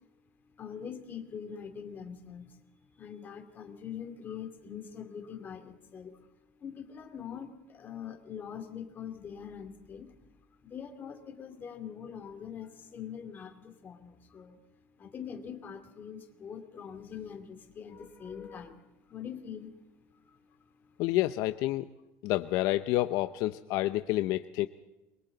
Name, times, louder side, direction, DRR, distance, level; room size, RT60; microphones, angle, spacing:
voice 1, 0.6-2.6 2.9-6.3 6.6-10.1 10.6-14.6 15.0-20.4 20.8-20.9, left 7 dB, 30° left, 6 dB, 2.7 m, -43 dB
voice 2, 21.0-21.9 22.2-24.7, left 16 dB, 65° left, 11 dB, 0.7 m, -29 dB
29.0 x 23.5 x 4.0 m, 1.0 s
cardioid pair, 155°, 7 cm